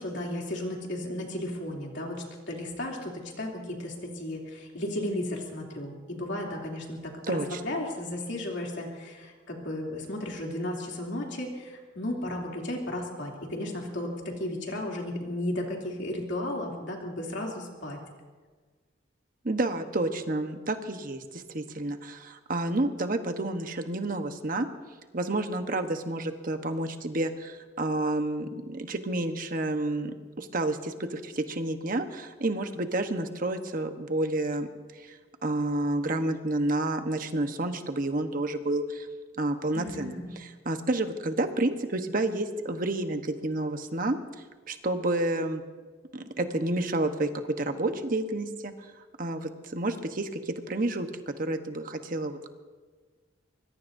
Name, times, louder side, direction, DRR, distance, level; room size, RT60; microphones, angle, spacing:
voice 1, 0.0-18.0 39.7-40.3, left 1 dB, 70° left, -1 dB, 3.0 m, -34 dB
voice 2, 7.3-7.6 19.4-24.7 25.1-34.7 34.9-39.1 39.4-44.2 44.7-45.6 46.1-47.3 47.6-52.5, right 2 dB, 45° right, 7 dB, 1.1 m, -30 dB
24.5 x 21.0 x 2.7 m, 1.4 s
head